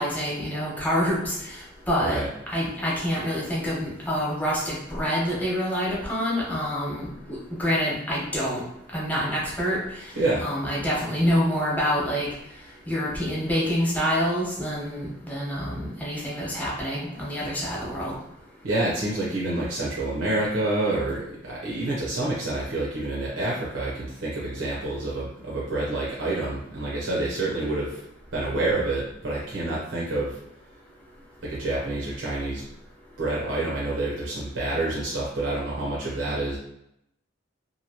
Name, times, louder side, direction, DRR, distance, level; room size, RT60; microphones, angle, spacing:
voice 1, 0.0-2.2 2.5-8.6 8.9-10.1 10.4-12.3 12.9-18.1, equal, 10° left, -6 dB, 0.9 m, -27 dB
voice 2, 18.6-28.0 28.3-30.4 31.4-32.6 33.2-36.6, right 2 dB, 85° right, -6 dB, 0.7 m, -28 dB
2.8 x 2.6 x 2.8 m, 0.80 s
head